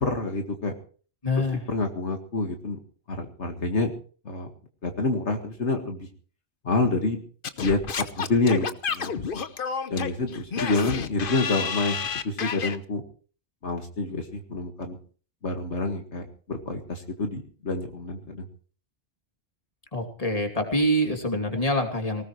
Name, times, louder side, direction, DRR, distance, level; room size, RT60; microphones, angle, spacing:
voice 1, 0.0-0.7 1.7-2.8 3.1-3.9 4.3-4.5 4.8-6.1 6.6-7.2 7.6-7.8 8.2-9.1 9.9-13.0 13.6-15.0 15.4-18.5, left 3 dB, 70° left, 4 dB, 2.2 m, -27 dB
voice 2, 1.2-1.6 19.9-22.2, equal, 30° left, 4 dB, 2.8 m, -25 dB
Singing / Scratching (performance technique), 7.4-12.8, left 6 dB, 50° left, 1.1 m, -30 dB
19.5 x 18.0 x 3.2 m, 0.41 s
omnidirectional pair, 1.2 m